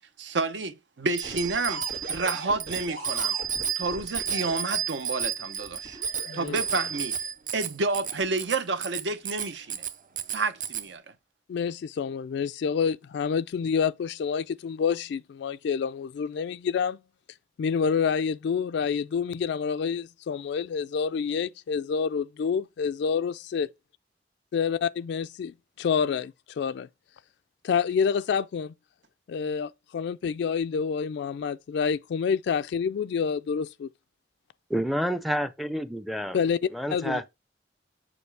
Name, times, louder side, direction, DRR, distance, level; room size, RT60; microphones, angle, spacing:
voice 1, 0.2-3.3 3.8-6.0 6.3-7.1 7.5-9.9 10.3-11.0, right 3 dB, 70° right, 0.8 m, -30 dB
Bicycle bell, 1.2-10.9, right 8 dB, 45° right, 0.6 m, -32 dB
sound 1, 1.2-4.5 5.6-7.2 7.9-8.2, right 1 dB, 90° right, 2.2 m, -41 dB
voice 2, 6.3-6.6 11.5-17.0 17.6-23.7 24.5-26.9 27.6-28.7 29.3-33.9 36.3-36.6 36.9-37.2, left 6 dB, 70° left, 0.3 m, -28 dB
voice 3, 34.7-36.4 36.7-37.3, equal, ahead, 0.5 m, -29 dB
6.9 x 4.9 x 3.3 m
head